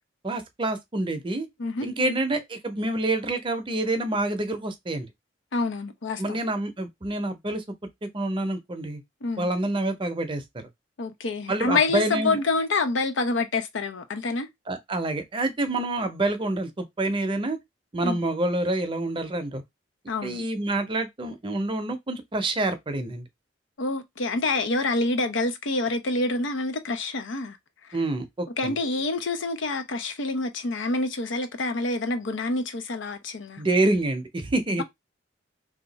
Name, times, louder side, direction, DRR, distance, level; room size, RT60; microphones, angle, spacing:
voice 1, 0.2-1.5 1.8-5.1 6.2-7.6 8.1-9.0 9.4-10.7 11.5-12.4 14.7-17.6 17.9-19.6 20.2-23.2 27.9-28.8 33.6-34.8, right 2 dB, 25° right, 0.6 m, -27 dB
voice 2, 1.6-2.2 5.5-6.4 9.2-9.5 11.0-14.5 18.0-18.2 20.1-20.5 23.8-27.6 28.6-33.6, left 3 dB, 80° left, 0.6 m, -27 dB
2.8 x 2.3 x 3.9 m
head